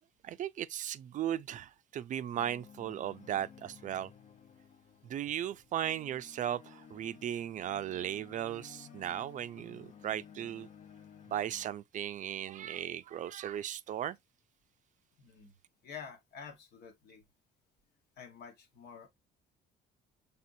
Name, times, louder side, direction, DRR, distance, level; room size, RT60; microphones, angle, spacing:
voice 1, 0.2-4.1 5.0-10.7 11.3-14.2, right 11 dB, 50° right, 0.4 m, -37 dB
sound 1, 2.3-11.7, left 7 dB, 45° left, 0.6 m, -55 dB
voice 2, 15.2-15.5 15.8-17.2 18.2-19.1, left 6 dB, 70° left, 1.4 m, -49 dB
5.8 x 3.5 x 2.6 m
cardioid pair, 110°, 17 cm